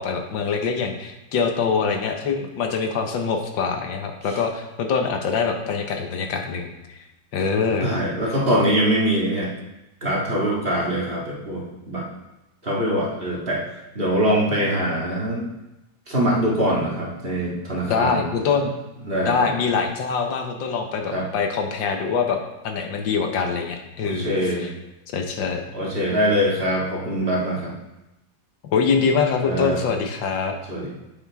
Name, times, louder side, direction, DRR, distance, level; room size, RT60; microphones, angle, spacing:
voice 1, 0.0-7.0 7.3-7.9 17.9-18.7 19.2-22.4 22.6-24.7 25.1-25.6 28.7-30.6, left 5 dB, 85° left, 4 dB, 1.7 m, -24 dB
voice 2, 7.8-9.5 10.0-12.1 12.6-13.6 13.9-15.5 16.1-18.2 19.0-19.5 21.1-21.2 24.0-24.7 25.7-27.7 29.4-29.8 30.7-30.9, equal, 30° right, -5 dB, 2.1 m, -23 dB
8.8 x 7.4 x 3.6 m, 0.96 s
omnidirectional pair, 2.0 m